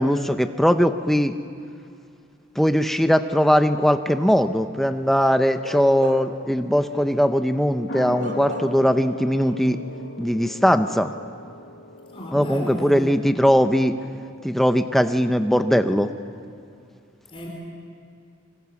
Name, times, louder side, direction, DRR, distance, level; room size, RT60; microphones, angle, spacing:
voice 1, 0.0-1.3 2.6-9.8 10.2-11.1 12.3-13.9 14.4-16.1, equal, ahead, 8 dB, 0.8 m, -20 dB
Bark / Livestock farm animals working animals, 5.6-6.5 6.9-7.1 8.2-9.0 9.3-9.5, left 1 dB, 65° right, 2.1 m, -34 dB
sound 1, 7.9-14.9 15.2-15.3, left 2 dB, 60° left, 1.6 m, -39 dB
voice 2, 12.1-13.0 17.3-17.5, equal, 25° left, -1 dB, 3.5 m, -33 dB
25.5 x 24.5 x 7.2 m, 2.5 s
head